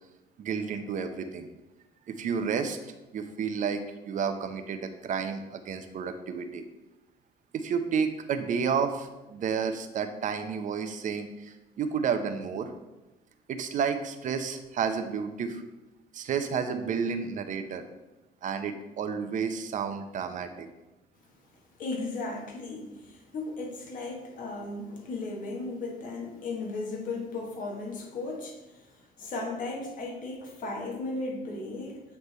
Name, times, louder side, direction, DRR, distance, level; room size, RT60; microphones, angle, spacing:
voice 1, 0.4-1.5 2.1-6.6 7.5-12.7 13.5-15.6 16.1-17.8 18.4-20.7, right 6 dB, 50° right, 8 dB, 0.7 m, -31 dB
voice 2, 21.8-32.0, left 3 dB, 50° left, -1 dB, 1.5 m, -36 dB
8.2 x 3.3 x 4.2 m, 1.0 s
cardioid pair, 110°, 17 cm